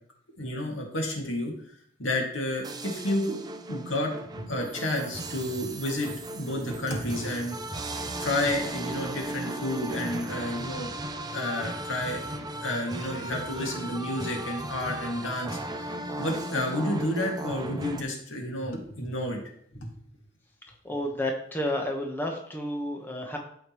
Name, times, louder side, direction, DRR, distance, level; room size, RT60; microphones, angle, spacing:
voice 1, 0.4-1.5 2.0-3.4 3.7-7.6 8.2-10.9 11.3-15.6 16.2-19.4 19.7-19.9, left 1 dB, 85° left, 0 dB, 2.2 m, -30 dB
sound 1, 2.6-18.0, right 1 dB, 20° right, 0.6 m, -36 dB
voice 2, 20.8-23.4, left 1 dB, 10° left, 1 dB, 1.1 m, -31 dB
13.5 x 5.2 x 3.1 m, 0.67 s
head